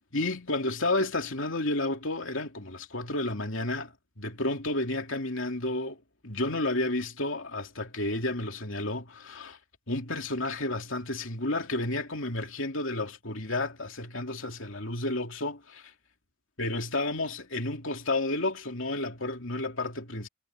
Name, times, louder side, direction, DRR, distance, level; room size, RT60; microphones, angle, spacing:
voice 1, 0.1-9.6 9.9-15.9 16.6-20.3, left 2 dB, 60° left, 3.1 m, -31 dB
head